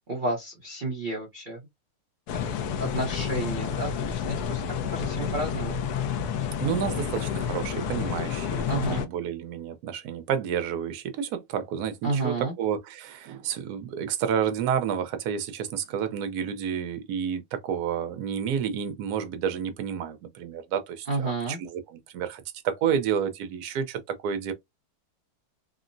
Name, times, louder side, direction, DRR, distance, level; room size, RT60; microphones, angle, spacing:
voice 1, 0.1-1.7 2.3-5.8 8.7-9.0 12.0-12.5 21.1-21.6, right 2 dB, 50° right, 0.6 m, -31 dB
sound 1, 2.3-9.1, left 7 dB, 70° left, 1.0 m, -30 dB
voice 2, 6.6-8.6 8.9-21.8 22.1-24.5, right 8 dB, 65° right, 1.0 m, -30 dB
3.6 x 2.0 x 2.5 m
omnidirectional pair, 2.0 m